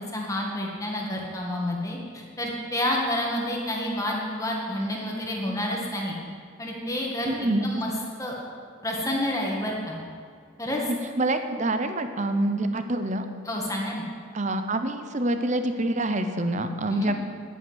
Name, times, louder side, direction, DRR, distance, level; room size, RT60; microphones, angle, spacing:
voice 1, 0.0-6.2 6.6-7.9 8.2-8.3 8.8-10.0 10.6-10.9 13.4-14.0 16.9-17.1, left 1 dB, 15° left, -2 dB, 1.7 m, -29 dB
voice 2, 7.3-7.7 10.9-13.2 14.3-17.1, right 1 dB, 35° right, 8 dB, 0.8 m, -26 dB
10.5 x 10.0 x 8.0 m, 2.2 s
head